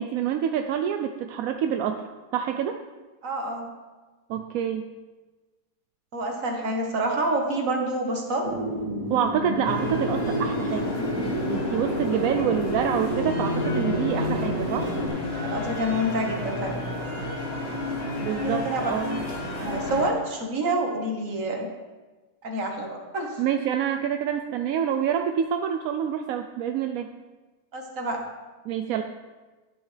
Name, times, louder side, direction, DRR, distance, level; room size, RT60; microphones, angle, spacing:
voice 1, 0.0-2.0 2.3-2.8 4.3-4.8 9.1-10.9 11.2-14.9 18.2-19.2 23.4-27.1 28.7-29.0, right 8 dB, 70° right, 6 dB, 0.9 m, -27 dB
voice 2, 3.2-3.7 6.1-8.5 14.1-14.4 15.3-16.8 18.4-18.9 19.6-21.7 22.4-23.4 27.7-28.2, right 1 dB, 55° right, 1 dB, 1.7 m, -28 dB
sound 1, 8.4-15.1, right 1 dB, 20° right, 2.6 m, -29 dB
sound 2, 9.6-20.1, left 2 dB, 40° left, 1.7 m, -31 dB
12.0 x 9.6 x 3.3 m, 1.3 s
omnidirectional pair, 1.7 m